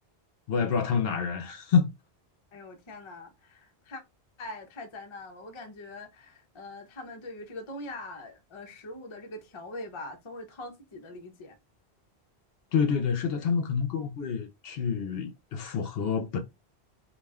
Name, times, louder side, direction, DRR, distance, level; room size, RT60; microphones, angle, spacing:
voice 1, 0.5-1.9 12.7-16.4, left 6 dB, 70° left, 0.8 m, -27 dB
voice 2, 2.5-4.0 4.4-11.6, left 2 dB, 35° left, 0.5 m, -42 dB
2.4 x 2.2 x 3.4 m
omnidirectional pair, 1.1 m